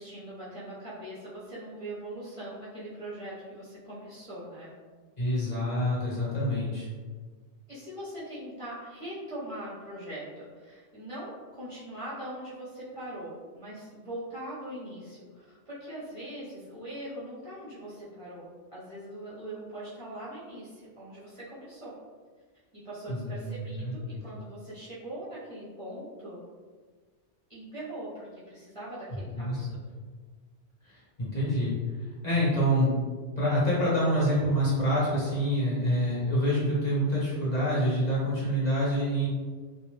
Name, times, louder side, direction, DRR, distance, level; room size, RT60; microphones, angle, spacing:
voice 1, 0.0-4.7 7.7-21.9 22.7-26.4 27.5-29.8, right 1 dB, 35° right, -10 dB, 0.7 m, -41 dB
voice 2, 5.2-6.9 23.1-24.2 29.4-29.6 30.8-31.7 32.2-32.9 33.4-39.3, equal, 40° left, -8 dB, 0.8 m, -27 dB
2.5 x 2.2 x 3.2 m, 1.5 s
omnidirectional pair, 1.2 m